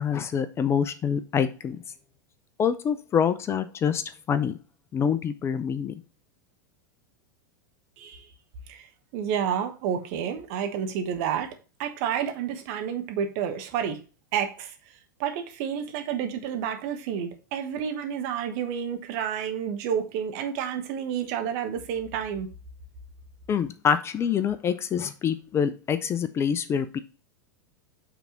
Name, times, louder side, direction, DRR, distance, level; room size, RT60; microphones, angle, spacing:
voice 1, 0.0-1.8 2.6-4.6 4.9-5.9 23.5-27.0, left 7 dB, 25° left, 0.5 m, -26 dB
voice 2, 9.1-14.0 14.3-14.7 15.2-22.5, right 8 dB, 50° right, 1.3 m, -30 dB
5.9 x 3.5 x 5.7 m
figure-of-eight pair, 90°, 10 cm